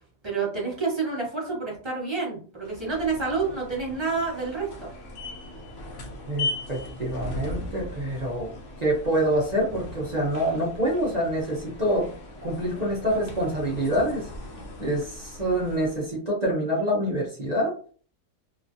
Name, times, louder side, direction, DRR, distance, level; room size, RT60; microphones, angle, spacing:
voice 1, 0.2-4.9, right 4 dB, 20° right, -4 dB, 1.2 m, -28 dB
sound 1, 2.6-16.1, left 2 dB, 60° left, 0.9 m, -38 dB
voice 2, 6.3-8.5 8.8-12.1 12.4-14.3 14.8-17.7, right 1 dB, 45° right, -4 dB, 0.5 m, -26 dB
3.0 x 2.5 x 2.6 m, 0.42 s
omnidirectional pair, 1.8 m